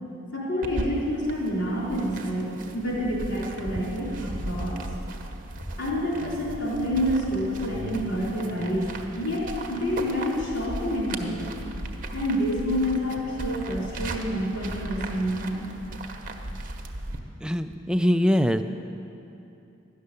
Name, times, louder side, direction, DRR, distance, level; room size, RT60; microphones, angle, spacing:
voice 1, 0.3-4.8 5.8-8.9 9.2-11.4 12.1-15.7, equal, 70° left, -5 dB, 3.7 m, -28 dB
sound 1, 0.6-17.2, right 1 dB, 45° right, 0.9 m, -37 dB
voice 2, 17.4-18.6, equal, 5° right, 8 dB, 0.3 m, -22 dB
12.5 x 6.6 x 9.7 m, 2.8 s
head